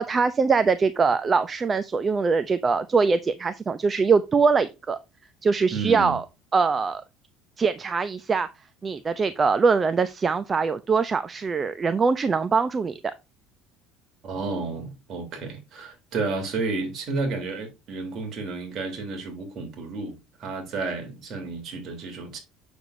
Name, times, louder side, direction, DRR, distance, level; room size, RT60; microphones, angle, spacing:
voice 1, 0.0-5.0 5.4-6.2 6.5-7.0 7.6-8.5 8.8-13.0, right 5 dB, 30° right, 0.6 m, -22 dB
voice 2, 5.7-6.2 14.2-22.4, right 3 dB, 50° right, 3.5 m, -31 dB
7.9 x 6.9 x 2.7 m
supercardioid pair, 95°, 0 cm